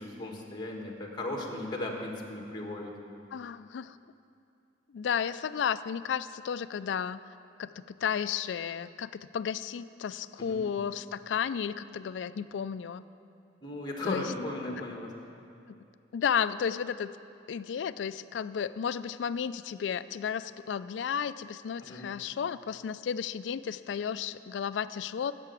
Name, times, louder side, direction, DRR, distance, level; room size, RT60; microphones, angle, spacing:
voice 1, 0.0-2.9 10.4-10.6 13.6-15.3 21.8-22.1, left 2 dB, 25° left, 1 dB, 1.5 m, -36 dB
voice 2, 3.3-4.0 4.9-7.2 7.6-13.0 14.1-14.2 15.7-15.8 16.1-17.1 17.5-25.3, left 7 dB, 75° left, 15 dB, 0.3 m, -33 dB
10.5 x 6.9 x 8.2 m, 2.5 s
head